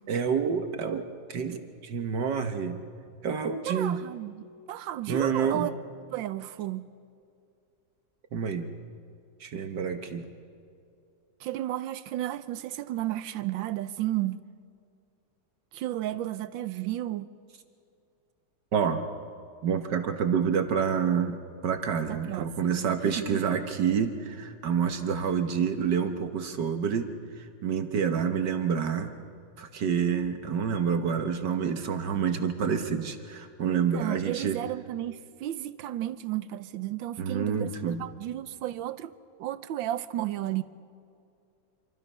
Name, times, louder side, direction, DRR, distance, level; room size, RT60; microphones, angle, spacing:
voice 1, 0.1-2.8 3.2-4.0 5.1-5.7 8.3-8.7 9.4-10.3 18.7-19.1 19.6-27.1 27.4-29.2 29.6-34.6 37.2-38.1, right 7 dB, 65° right, 1.7 m, -28 dB
voice 2, 3.6-5.7 6.1-6.9 11.4-14.4 15.7-17.3 22.1-23.4 33.7-39.1 39.4-40.6, right 14 dB, 80° right, 1.5 m, -33 dB
27.0 x 25.0 x 5.5 m
omnidirectional pair, 2.1 m